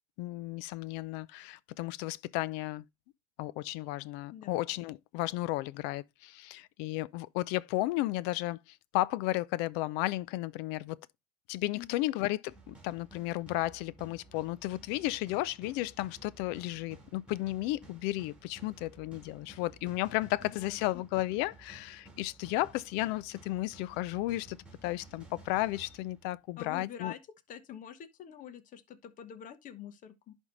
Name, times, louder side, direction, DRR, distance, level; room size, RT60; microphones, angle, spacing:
voice 1, 0.2-2.8 3.4-8.6 8.9-11.0 11.5-24.6 24.8-27.1, left 17 dB, 60° left, 0.5 m, -33 dB
voice 2, 4.3-4.6 11.7-12.0 20.4-21.0 26.6-27.2 27.5-30.3, left 9 dB, 40° left, 1.2 m, -46 dB
sound 1, 12.5-26.7, right 2 dB, 5° right, 2.6 m, -55 dB
11.0 x 3.6 x 4.0 m
hypercardioid pair, 90°, 20 cm